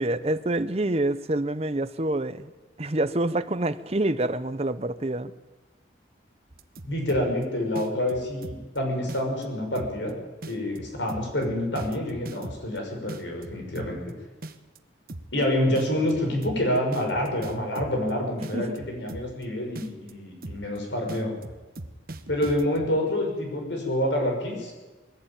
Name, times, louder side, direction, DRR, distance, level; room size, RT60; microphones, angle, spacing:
voice 1, 0.0-2.5 2.8-5.3 18.5-18.8, right 1 dB, 35° right, 0.8 m, -27 dB
sound 1, 6.5-7.4 7.8-8.8 9.1-9.4 9.8-10.1 10.4-12.8 13.1-14.1 14.4-14.8 15.1-15.4 15.8-18.1 18.4-19.4 19.8-20.1 20.4-20.8 21.1-22.9, right 1 dB, 50° right, 1.1 m, -39 dB
voice 2, 6.8-10.1 10.4-14.0 15.3-21.3 22.3-24.9, left 1 dB, 75° left, 6.4 m, -27 dB
20.5 x 16.0 x 9.1 m
head